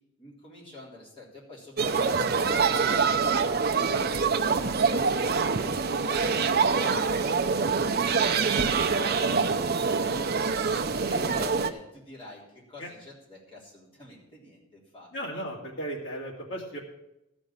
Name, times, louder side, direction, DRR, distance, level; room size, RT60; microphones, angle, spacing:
voice 1, 0.2-4.3 4.8-9.2 10.6-15.4, left 1 dB, 25° left, -6 dB, 3.9 m, -46 dB
sound 1, 1.8-11.7, right 5 dB, 45° right, 0.6 m, -25 dB
voice 2, 15.1-16.8, right 1 dB, 60° left, -2 dB, 2.5 m, -36 dB
13.5 x 5.3 x 8.8 m, 0.87 s
head